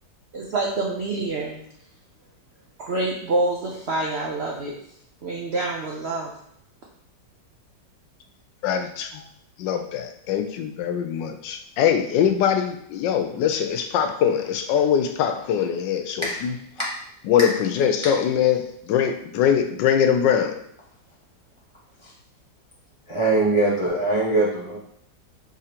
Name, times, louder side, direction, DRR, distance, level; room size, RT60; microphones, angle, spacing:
voice 1, 0.3-1.6 2.8-4.7 5.2-6.3, right 2 dB, 75° right, -2 dB, 0.6 m, -26 dB
voice 2, 8.6-9.2 9.6-16.5 17.3-20.6, left 8 dB, 85° left, 7 dB, 1.3 m, -22 dB
voice 3, 23.1-24.8, right 2 dB, 30° right, -6 dB, 0.5 m, -22 dB
4.9 x 3.6 x 2.9 m, 0.71 s
omnidirectional pair, 1.9 m